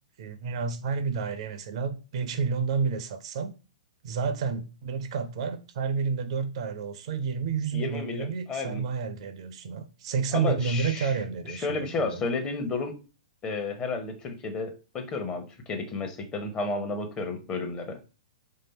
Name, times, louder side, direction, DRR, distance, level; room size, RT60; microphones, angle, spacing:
voice 1, 0.2-3.5 4.0-12.2, right 5 dB, 50° right, 0.4 m, -30 dB
voice 2, 7.7-8.8 10.3-11.1 11.5-13.0 13.4-18.0, left 3 dB, 20° left, 0.7 m, -32 dB
3.2 x 2.8 x 3.9 m
figure-of-eight pair, 110°, 4 cm